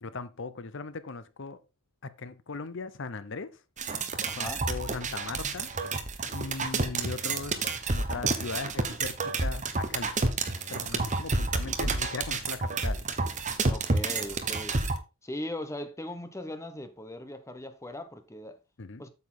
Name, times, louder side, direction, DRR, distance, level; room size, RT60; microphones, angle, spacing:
voice 1, 0.0-1.6 2.0-3.6 4.3-5.7 6.3-10.1 10.7-13.1 18.8-19.0, left 4 dB, 60° left, 0.8 m, -38 dB
sound 1, 3.8-15.0, right 3 dB, 35° right, 1.0 m, -30 dB
voice 2, 4.2-4.7 13.6-14.8 15.2-18.6 19.0-19.1, left 1 dB, 15° left, 1.0 m, -39 dB
8.5 x 6.9 x 3.9 m
head